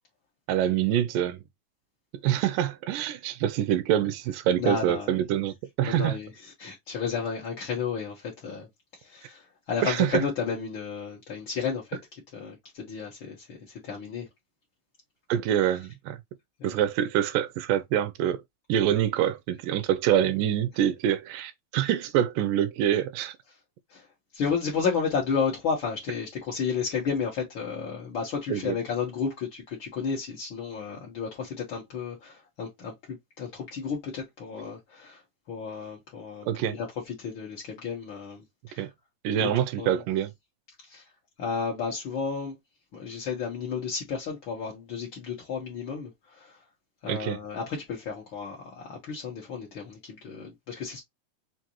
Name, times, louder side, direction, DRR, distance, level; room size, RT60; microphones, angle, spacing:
voice 1, 0.5-1.4 2.2-6.2 9.8-10.2 15.3-16.2 16.6-18.4 18.7-23.4 28.5-28.8 36.5-36.8 38.8-38.9 39.2-40.3 47.1-47.4, right 10 dB, 80° right, 2.0 m, -25 dB
voice 2, 4.6-5.1 5.8-8.7 9.0-12.0 12.3-14.3 16.6-16.8 23.9-24.1 24.3-32.9 33.4-35.2 35.5-38.9 39.3-39.5 39.8-40.0 40.8-41.0 41.4-42.5 42.9-46.6 47.0-51.0, left 6 dB, 75° left, 1.1 m, -32 dB
5.8 x 2.6 x 2.9 m
omnidirectional pair, 4.0 m